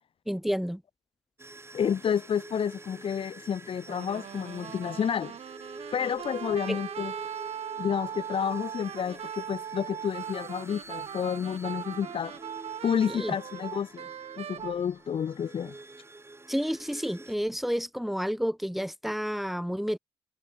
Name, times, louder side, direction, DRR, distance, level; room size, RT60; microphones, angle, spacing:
voice 1, 0.3-0.8 6.7-6.8 13.0-13.4 16.5-20.0, equal, ahead, 3.2 m, -30 dB
sound 1, 1.4-17.3, right 2 dB, 20° right, 5.3 m, -47 dB
voice 2, 1.7-5.4 5.9-7.1 7.8-12.4 12.8-14.1 14.4-15.7, left 8 dB, 55° left, 0.9 m, -30 dB
sound 2, 3.9-14.8, right 9 dB, 65° right, 2.6 m, -39 dB
supercardioid pair, 55°, 11 cm